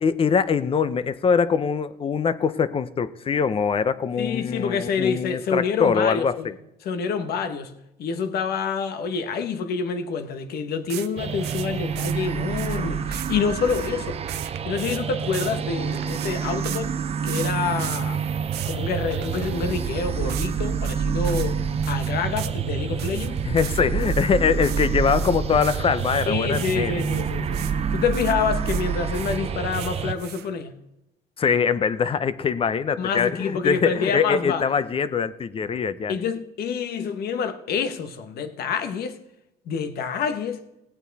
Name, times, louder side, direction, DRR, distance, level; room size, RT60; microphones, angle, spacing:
voice 1, 0.0-6.5 23.4-27.0 31.4-36.1, left 6 dB, 35° left, 0.7 m, -23 dB
voice 2, 4.2-6.5 6.8-7.7 8.0-14.2 14.6-16.9 17.2-18.2 18.6-21.6 21.9-23.4 26.3-27.6 27.9-30.8 33.0-34.6 36.1-39.2 39.7-40.6, left 6 dB, 70° left, 1.3 m, -27 dB
sound 1, 10.9-16.8 17.3-18.0 18.3-18.8 19.1-19.9 20.3-20.6 20.8-21.0 21.2-21.5 21.8-22.6 23.0-27.8 28.1-28.9 29.1-30.6, right 13 dB, 75° right, 0.7 m, -38 dB
sound 2, 11.2-30.1, right 7 dB, 35° right, 0.8 m, -27 dB
17.0 x 9.0 x 4.1 m
cardioid pair, 110°, 17 cm